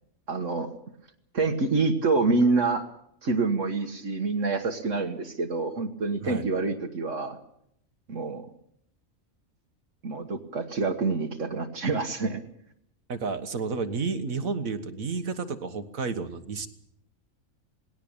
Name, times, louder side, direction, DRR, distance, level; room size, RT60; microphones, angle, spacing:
voice 1, 0.3-0.7 1.3-2.8 3.2-7.4 8.1-8.4 10.0-12.4, right 3 dB, 65° right, 4 dB, 1.7 m, -26 dB
voice 2, 13.1-16.7, right 4 dB, 80° right, 9 dB, 1.8 m, -31 dB
20.0 x 17.5 x 8.7 m, 0.74 s
omnidirectional pair, 1.4 m